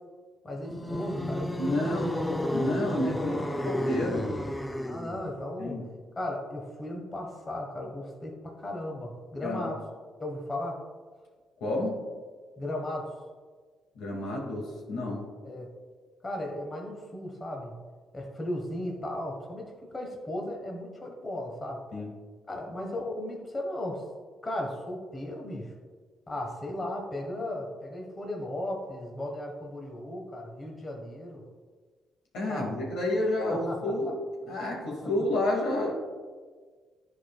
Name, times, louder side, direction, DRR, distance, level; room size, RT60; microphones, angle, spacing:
voice 1, 0.4-2.0 2.9-3.5 4.8-5.8 6.2-9.8 10.2-10.8 12.6-13.1 15.4-15.7 16.2-17.7 18.1-21.8 22.5-24.0 24.4-25.7 26.3-31.4 32.5-32.8 33.5-33.9 35.0-35.1, left 1 dB, 25° left, 0 dB, 1.3 m, -36 dB
sound 1, 0.6-5.3, left 1 dB, 10° left, 0.5 m, -31 dB
voice 2, 1.6-2.1 2.5-3.3 3.6-4.3 5.6-5.8 9.4-9.7 11.6-12.0 14.0-15.2 21.9-22.1 32.3-34.1 34.5-35.9, left 1 dB, 85° left, -2 dB, 2.0 m, -30 dB
10.5 x 4.7 x 2.3 m, 1.5 s
cardioid pair, 90°, 0 cm